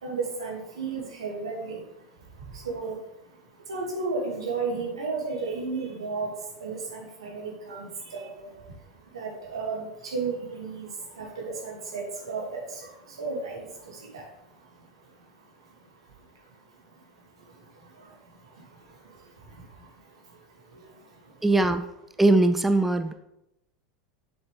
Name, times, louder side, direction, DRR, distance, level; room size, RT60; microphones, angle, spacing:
voice 1, 0.0-1.8 2.6-3.0 3.7-6.3 6.6-8.5 9.1-10.9 11.2-12.6 13.2-13.6 14.1-14.2, right 4 dB, 85° right, -1 dB, 2.4 m, -33 dB
voice 2, 21.4-21.9 22.2-23.1, right 2 dB, 5° right, 9 dB, 0.5 m, -21 dB
7.5 x 7.0 x 3.4 m, 0.85 s
hypercardioid pair, 85°, 3 cm